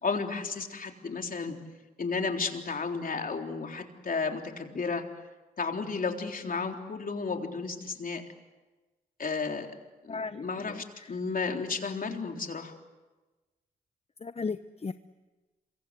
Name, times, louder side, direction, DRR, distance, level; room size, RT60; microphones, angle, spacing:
voice 1, 0.0-1.6 2.0-5.1 5.6-8.2 9.2-9.7 10.0-12.7, left 4 dB, 50° left, 4 dB, 3.7 m, -33 dB
voice 2, 10.1-11.1 14.2-14.9, left 4 dB, 35° left, 12 dB, 0.9 m, -36 dB
27.0 x 24.5 x 8.3 m, 1.2 s
supercardioid pair, 50°, 18 cm